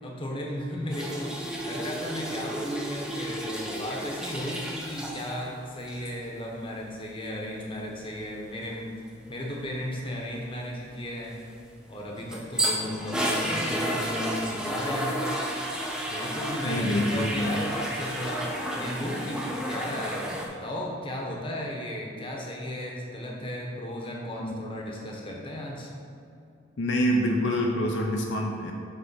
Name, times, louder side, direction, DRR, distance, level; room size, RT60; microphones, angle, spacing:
voice 1, 0.0-11.4 11.9-15.2 16.1-25.9, equal, 25° left, -2 dB, 0.9 m, -35 dB
sound 1, 0.9-5.5 5.8-6.1 11.9-20.5, equal, 5° right, 0.6 m, -32 dB
voice 2, 16.6-17.5 24.4-24.6 26.8-28.7, equal, 65° left, 0 dB, 0.6 m, -26 dB
7.9 x 3.4 x 5.5 m, 2.6 s
head